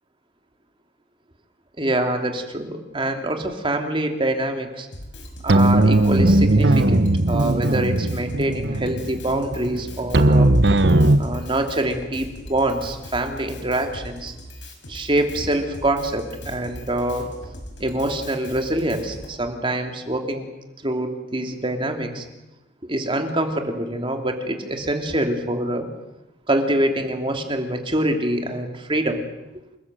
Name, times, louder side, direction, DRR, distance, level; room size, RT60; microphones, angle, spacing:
voice 1, 1.8-4.9 5.4-10.6 11.2-14.3 14.9-17.2 17.8-20.4 20.8-22.2 22.9-25.8 26.5-29.2, right 1 dB, 30° right, 4 dB, 2.9 m, -25 dB
Drum kit, 4.9-19.3, equal, 90° left, 6.0 m, -39 dB
sound 1, 5.5-11.2, right 1 dB, 70° right, 1.2 m, -18 dB
28.0 x 20.0 x 7.8 m, 0.98 s
head